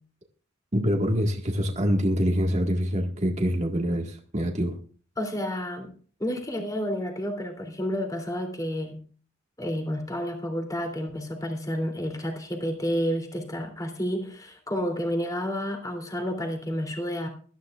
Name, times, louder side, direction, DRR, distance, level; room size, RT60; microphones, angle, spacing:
voice 1, 0.7-4.8, equal, 35° right, 1.8 m, -25 dB
voice 2, 5.2-5.9 6.2-9.0 9.6-17.3, equal, 15° left, 3.1 m, -30 dB
21.0 x 13.0 x 2.5 m
head